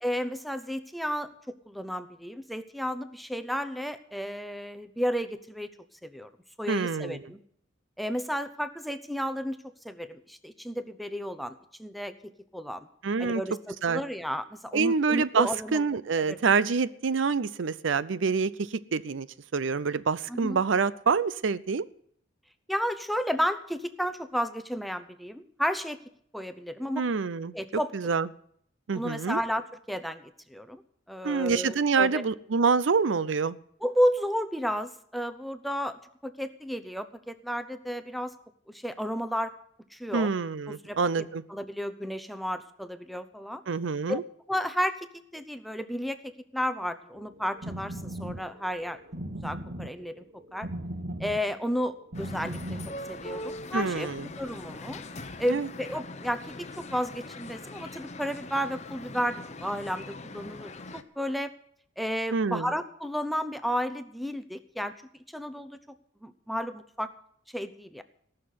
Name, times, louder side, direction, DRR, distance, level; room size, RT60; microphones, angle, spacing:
voice 1, 0.0-5.7 6.0-6.3 6.6-7.4 8.0-9.6 9.8-12.9 13.2-15.8 16.3-16.5 20.3-20.6 22.7-26.0 26.3-27.0 27.5-27.9 28.9-30.2 30.5-30.8 31.1-32.2 33.8-38.3 38.7-39.5 39.9-40.3 40.7-41.0 41.5-43.6 44.1-44.2 44.5-49.0 49.4-50.2 50.5-50.7 51.2-52.8 53.1-54.1 54.4-55.0 55.4-61.5 62.0-64.9 65.3-65.8 66.2-67.1 67.5-68.0, equal, ahead, 9 dB, 0.8 m, -32 dB
voice 2, 6.7-7.2 13.0-13.4 13.8-14.0 14.7-19.3 19.5-21.8 27.0-27.5 27.9-28.3 28.9-29.4 31.2-33.6 40.1-41.4 43.7-44.2 53.7-54.3 55.5-55.7 62.3-62.7, right 5 dB, 70° right, 17 dB, 0.6 m, -26 dB
sound 1, 47.1-53.2, right 1 dB, 45° right, 1.2 m, -39 dB
sound 2, 52.1-61.0, left 2 dB, 35° left, 0.9 m, -42 dB
18.0 x 6.7 x 9.4 m, 0.66 s
head